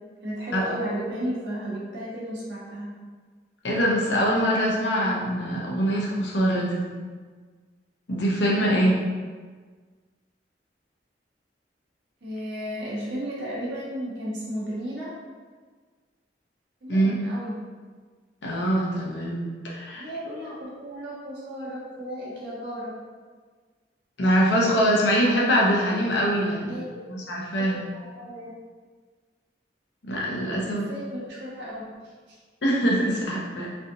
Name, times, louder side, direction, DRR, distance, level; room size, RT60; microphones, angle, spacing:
voice 1, 0.2-2.9 12.2-15.1 16.8-17.5 19.9-22.9 26.5-26.9 27.5-28.5 30.6-31.9 32.3-32.4 33.5-33.6, equal, 85° right, -7 dB, 1.1 m, -34 dB
voice 2, 3.6-6.9 8.1-9.0 16.9-17.2 18.4-20.0 24.2-26.7 27.1-27.9 30.0-30.8 32.6-33.7, equal, 85° left, -4 dB, 0.7 m, -23 dB
3.2 x 2.7 x 2.7 m, 1.5 s
head